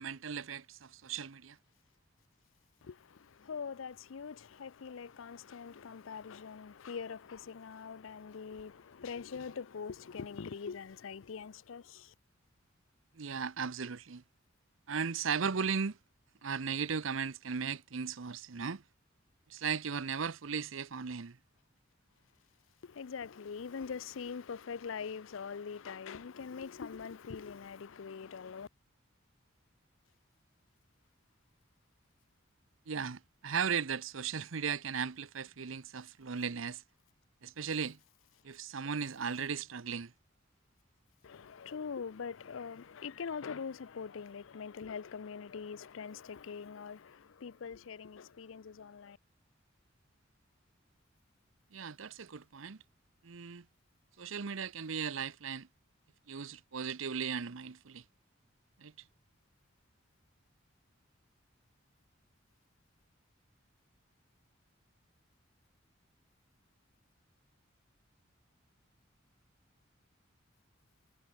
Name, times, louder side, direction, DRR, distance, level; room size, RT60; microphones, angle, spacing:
voice 1, 0.0-1.6 13.2-14.2 14.9-16.0 16.4-18.8 19.5-21.4 32.9-36.8 37.4-38.0 38.4-40.1 51.7-52.8 53.2-53.6 54.2-55.7 56.3-58.0 58.8-58.9, right 6 dB, 80° right, 0.8 m, -37 dB
voice 2, 2.8-12.1 22.8-28.7 41.2-49.2, left 6 dB, 80° left, 0.5 m, -43 dB
head